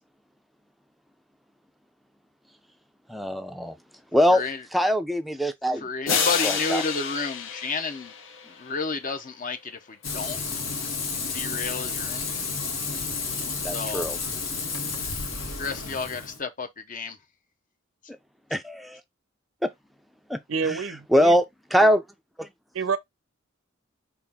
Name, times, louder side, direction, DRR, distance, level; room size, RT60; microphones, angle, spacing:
voice 1, 3.1-3.8 4.1-4.4 4.7-6.1 6.4-6.8 13.6-14.2 18.5-19.0 19.6-19.7 20.3-20.8 21.1-21.4 21.7-22.0 22.4-22.5, equal, ahead, 0.4 m, -23 dB
voice 2, 4.3-4.6 5.8-8.1 8.5-10.4 11.3-12.3 13.7-14.1 15.6-17.2, left 4 dB, 40° left, 0.8 m, -31 dB
sound 1, 6.1-8.7, left 6 dB, 70° left, 1.0 m, -28 dB
Frying (food), 10.0-16.4, left 4 dB, 85° left, 1.4 m, -31 dB
voice 3, 20.5-21.3 22.7-23.0, right 5 dB, 80° right, 0.6 m, -28 dB
5.6 x 2.6 x 3.5 m
head